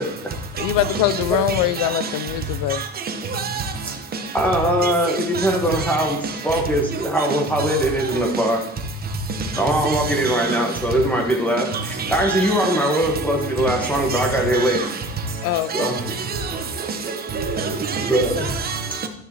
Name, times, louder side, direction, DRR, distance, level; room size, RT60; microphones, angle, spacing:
voice 1, 0.6-2.9 15.4-16.0, left 13 dB, 70° left, 0.6 m, -23 dB
voice 2, 3.3-3.6 4.8-4.9 10.2-10.5 12.3-12.5 14.1-14.2 14.5-14.8 15.7-15.9 17.3-18.2 18.6-19.1, right 5 dB, 30° right, 1.1 m, -26 dB
voice 3, 4.3-6.2 6.4-8.6 9.6-14.8 15.7-15.9 18.1-18.5, right 1 dB, 5° left, 1.5 m, -21 dB
12.5 x 6.6 x 3.0 m
cardioid pair, 135°, 32 cm